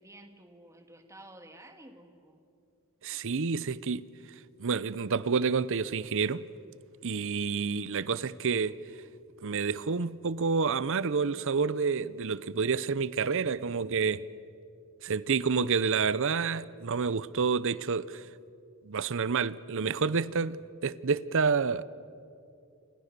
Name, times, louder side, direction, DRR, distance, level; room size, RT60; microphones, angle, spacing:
voice 1, 0.0-2.4, right 1 dB, 15° right, 2.1 m, -52 dB
voice 2, 3.0-4.1 4.6-6.4 7.0-8.7 9.4-14.2 15.0-18.3 18.8-21.8, right 5 dB, 60° right, 0.7 m, -29 dB
28.5 x 26.5 x 6.8 m
head